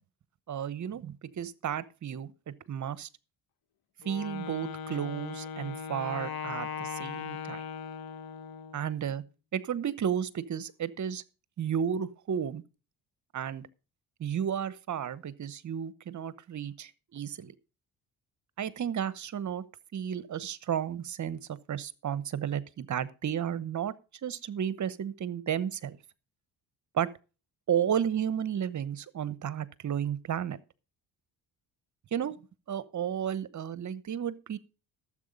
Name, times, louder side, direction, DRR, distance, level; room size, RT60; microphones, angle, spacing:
voice 1, 0.5-3.1 4.0-7.6 8.7-9.2 9.5-11.2 11.6-12.6 13.3-13.7 14.2-17.5 18.6-19.6 19.9-23.9 24.2-26.0 26.9-27.1 27.7-30.6 32.1-32.3 32.7-34.6, right 9 dB, 45° right, 1.0 m, -33 dB
Wind instrument woodwind instrument, 4.0-8.9, left 7 dB, 65° left, 1.2 m, -39 dB
12.0 x 7.6 x 5.1 m
supercardioid pair, 70°, 40 cm